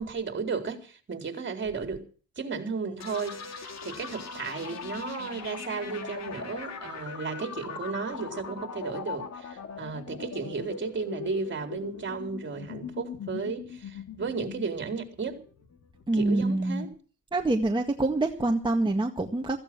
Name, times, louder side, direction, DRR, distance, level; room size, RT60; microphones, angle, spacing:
voice 1, 0.0-2.1 2.4-15.4 16.1-16.9, right 4 dB, 40° right, 4.2 m, -34 dB
sound 1, 3.0-16.6, left 5 dB, 60° left, 3.5 m, -40 dB
voice 2, 16.1-16.9 17.3-19.6, right 2 dB, 15° right, 1.9 m, -26 dB
16.0 x 15.0 x 6.1 m
cardioid pair, 90°, 30 cm